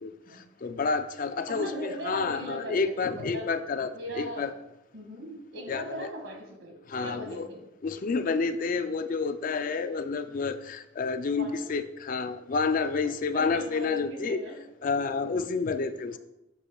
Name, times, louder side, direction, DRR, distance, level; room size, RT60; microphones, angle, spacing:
voice 1, 0.0-3.9 4.2-4.5 5.7-6.1 6.9-7.5 7.8-14.4 14.8-16.2, left 4 dB, 40° left, 10 dB, 0.4 m, -29 dB
voice 2, 1.5-3.5 3.9-4.5 4.9-7.6 11.3-11.7 13.3-14.5, equal, 70° right, 2 dB, 1.9 m, -39 dB
10.0 x 7.1 x 2.3 m, 0.90 s
head